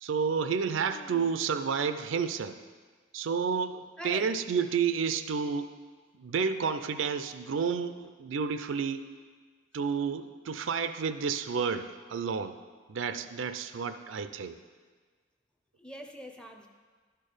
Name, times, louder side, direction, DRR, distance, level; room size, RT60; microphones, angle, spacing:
voice 1, 0.0-2.6 3.1-5.7 6.2-9.0 9.7-12.6 12.9-14.6, right 6 dB, 90° right, 10 dB, 0.4 m, -30 dB
voice 2, 0.9-1.3 4.0-4.3 15.8-16.7, equal, 5° left, 3 dB, 0.5 m, -43 dB
11.5 x 4.5 x 5.0 m, 1.5 s
head